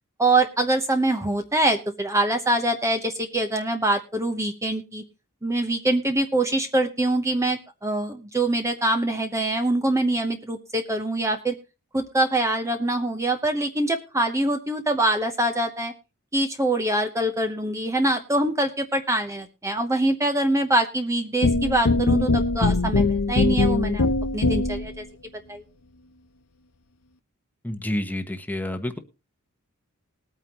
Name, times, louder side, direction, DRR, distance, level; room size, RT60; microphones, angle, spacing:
voice 1, 0.2-5.0 5.4-11.6 11.9-15.9 16.3-24.1 24.3-25.0 25.5-25.6, right 1 dB, 15° right, 5 dB, 0.9 m, -24 dB
sound 1, 21.4-25.0, left 3 dB, 90° left, 0.8 m, -21 dB
voice 2, 27.6-29.0, left 1 dB, 10° left, 7 dB, 1.1 m, -29 dB
20.5 x 9.0 x 3.0 m, 0.29 s
head